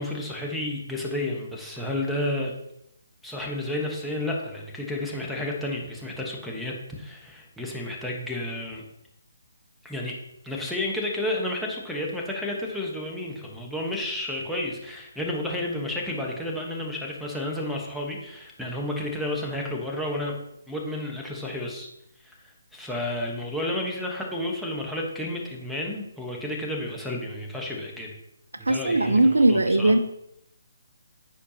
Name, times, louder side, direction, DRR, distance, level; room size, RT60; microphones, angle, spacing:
voice 1, 0.0-2.5 3.2-8.8 9.8-10.1 10.4-20.3 20.7-21.9 22.2-28.2 28.6-30.0, left 1 dB, ahead, -3 dB, 1.2 m, -31 dB
voice 2, 28.7-30.0, right 2 dB, 85° right, 10 dB, 0.6 m, -19 dB
9.8 x 4.5 x 2.9 m, 0.78 s
figure-of-eight pair, 150°, 0 cm